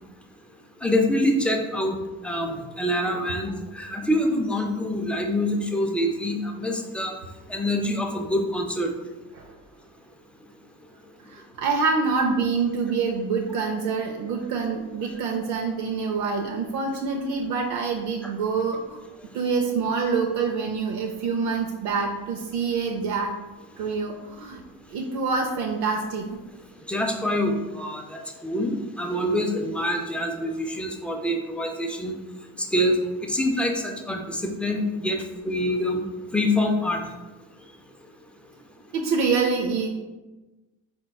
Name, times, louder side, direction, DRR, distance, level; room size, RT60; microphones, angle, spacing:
voice 1, 0.8-2.0 2.2-3.5 3.7-7.1 7.5-8.9 18.2-18.3 26.9-32.2 32.6-33.0 33.2-36.1 36.3-37.0, left 1 dB, 5° left, 2 dB, 0.3 m, -25 dB
voice 2, 11.3-19.0 19.3-23.3 23.8-24.6 24.9-26.4 38.9-39.9, right 5 dB, 75° right, 1 dB, 0.6 m, -26 dB
4.6 x 4.2 x 2.2 m, 1.1 s
cardioid pair, 130°, 37 cm